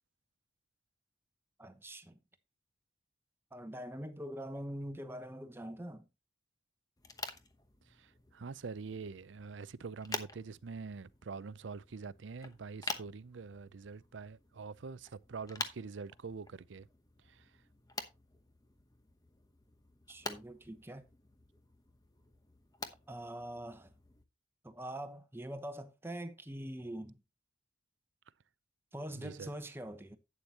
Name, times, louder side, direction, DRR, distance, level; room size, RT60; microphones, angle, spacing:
voice 1, 1.6-2.2 3.5-6.0 12.9-13.0 20.1-21.0 23.1-23.9 24.6-27.2 28.9-30.2, right 1 dB, 10° right, 1.0 m, -43 dB
sound 1, 7.0-24.2, left 3 dB, 20° left, 0.9 m, -48 dB
voice 2, 8.0-16.9 17.3-17.5 29.2-29.5, right 4 dB, 80° right, 0.5 m, -45 dB
11.5 x 8.7 x 2.9 m
head